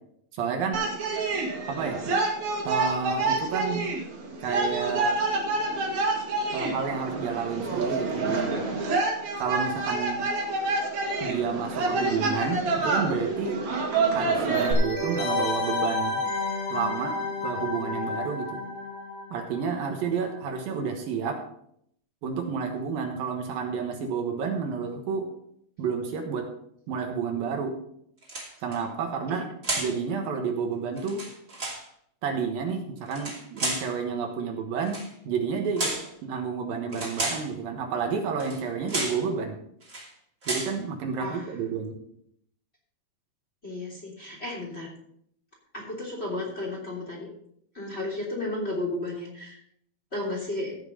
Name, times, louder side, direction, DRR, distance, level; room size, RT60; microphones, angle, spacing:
voice 1, 0.3-0.8 1.7-2.1 2.6-3.9 4.4-5.2 6.5-8.6 9.4-10.2 11.2-13.6 14.1-16.2 16.7-17.2 17.4-18.6 19.3-21.4 22.2-25.3 25.8-26.5 26.9-27.7 28.6-29.5 29.8-31.2 32.2-35.0 35.3-35.9 36.2-39.6 40.5-42.0, right 6 dB, 70° right, 3 dB, 2.9 m, -30 dB
sound 1, 0.7-14.7, right 3 dB, 50° right, 3.0 m, -27 dB
sound 2, 14.5-20.0 20.3-20.4, left 2 dB, 85° left, 4.5 m, -31 dB
sound 3, 28.2-28.8 29.6-30.0 31.0-31.8 33.1-33.9 34.8-35.1 35.8-36.1 36.9-37.5 38.4-38.6 38.9-39.2 39.8-40.1 40.4-40.8, right 2 dB, 25° right, 2.4 m, -32 dB
voice 2, 41.2-41.5 43.6-44.9 45.7-47.3 47.7-49.6 50.1-50.7, left 2 dB, 20° left, -3 dB, 2.8 m, -33 dB
15.5 x 5.7 x 5.6 m, 0.70 s
omnidirectional pair, 4.4 m